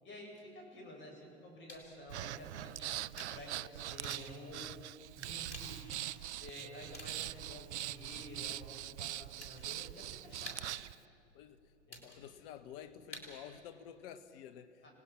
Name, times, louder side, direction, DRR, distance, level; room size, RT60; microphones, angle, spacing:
voice 1, 0.0-4.8 5.1-5.9 6.4-10.6 11.9-12.1 14.8-14.9, left 1 dB, 30° left, 0 dB, 7.8 m, -51 dB
sound 1, 1.7-13.8, left 1 dB, 90° left, 4.6 m, -55 dB
Breathing, 2.1-11.0, right 14 dB, 75° right, 0.5 m, -43 dB
Telephone, 3.9-8.9, right 11 dB, 30° right, 0.7 m, -58 dB
voice 2, 11.9-14.9, left 9 dB, 55° left, 11 dB, 1.3 m, -51 dB
29.0 x 19.0 x 5.9 m, 2.5 s
figure-of-eight pair, 90°, 35 cm